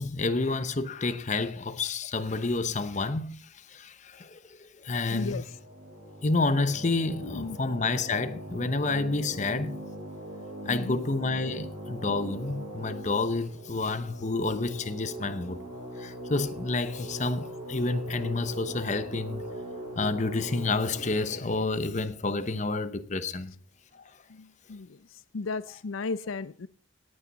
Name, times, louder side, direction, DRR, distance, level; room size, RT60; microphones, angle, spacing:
voice 1, 0.0-5.4 6.2-9.8 10.7-15.6 16.0-19.4 20.0-23.5 23.9-24.0, left 3 dB, 35° left, 0.8 m, -29 dB
sound 1, 4.9-23.0, equal, 25° right, 5.9 m, -41 dB
voice 2, 5.1-5.4 7.2-7.6 10.7-11.1 24.3-25.0 25.3-26.7, left 4 dB, 85° left, 0.5 m, -35 dB
17.5 x 8.8 x 4.1 m
head